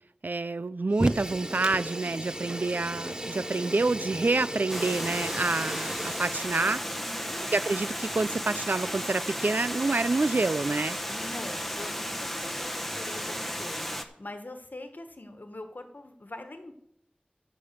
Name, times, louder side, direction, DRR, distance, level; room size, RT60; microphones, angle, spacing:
voice 1, 0.2-6.8 7.5-11.0, right 3 dB, 70° right, 0.4 m, -28 dB
Fire, 0.9-6.5, right 1 dB, 25° right, 0.7 m, -35 dB
Water, 4.7-14.0, equal, 5° left, 1.0 m, -34 dB
voice 2, 7.0-7.4 11.1-16.7, left 2 dB, 70° left, 1.3 m, -43 dB
13.5 x 5.3 x 6.8 m
wide cardioid pair, 40°, 3 cm